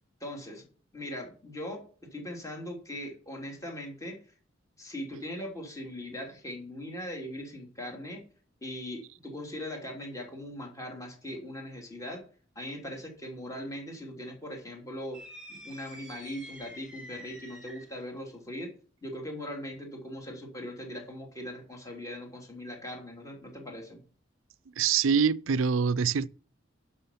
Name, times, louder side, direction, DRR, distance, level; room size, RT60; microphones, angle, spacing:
voice 1, 0.2-0.7 0.9-4.2 4.8-8.2 8.6-12.2 12.5-15.2 15.5-18.7 19.0-24.0, left 1 dB, 15° left, 3.1 m, -40 dB
sound 1, 15.1-18.0, equal, 5° right, 5.1 m, -47 dB
voice 2, 24.8-26.3, right 6 dB, 80° right, 0.5 m, -25 dB
11.0 x 6.3 x 5.8 m
head